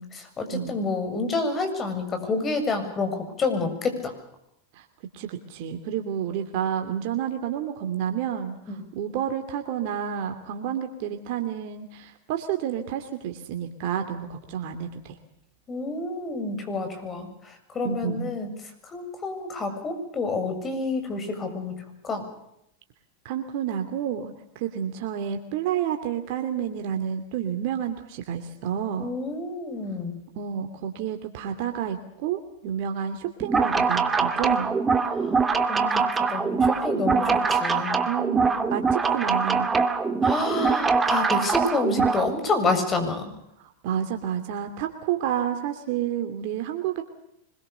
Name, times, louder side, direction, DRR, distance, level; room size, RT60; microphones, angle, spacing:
voice 1, 0.0-4.1 15.7-18.5 18.9-22.3 29.0-30.2 35.1-35.3 35.7-38.1 40.2-43.3, left 3 dB, 25° left, 7 dB, 7.3 m, -29 dB
voice 2, 0.5-0.8 4.7-4.8 5.1-15.2 17.8-18.3 23.2-29.2 30.4-34.8 38.1-39.8 43.8-47.0, right 9 dB, 60° right, 5 dB, 2.8 m, -30 dB
sound 1, 33.4-42.3, right 5 dB, 15° right, 2.1 m, -23 dB
25.0 x 22.5 x 6.9 m, 0.80 s
hypercardioid pair, 110°, 0 cm